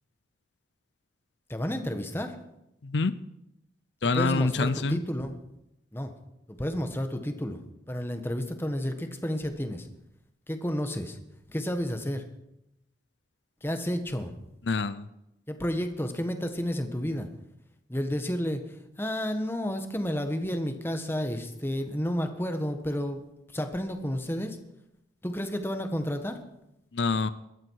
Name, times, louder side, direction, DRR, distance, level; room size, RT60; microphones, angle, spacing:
voice 1, 1.5-2.4 4.0-5.4 5.9-6.1 6.5-7.6 7.9-9.9 10.5-11.2 11.5-12.2 13.6-14.3 15.5-17.3 17.9-18.6 19.0-23.2 23.5-24.6 25.2-26.4, equal, 15° left, 7 dB, 1.4 m, -31 dB
voice 2, 2.8-3.2 4.0-5.0 14.7-15.1 26.9-27.3, left 3 dB, 75° left, 15 dB, 0.6 m, -26 dB
20.5 x 14.0 x 4.8 m, 0.87 s
head